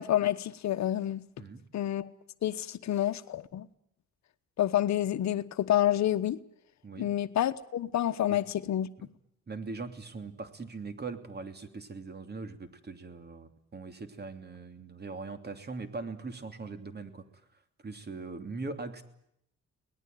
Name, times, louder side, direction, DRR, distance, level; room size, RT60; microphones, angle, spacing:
voice 1, 0.0-1.2 1.7-2.1 2.4-3.7 4.6-6.4 7.0-8.9, left 12 dB, 65° left, 1.1 m, -28 dB
voice 2, 9.5-17.2 17.8-19.0, right 3 dB, 35° right, 2.9 m, -41 dB
24.0 x 19.0 x 9.3 m
cardioid pair, 90°, 30 cm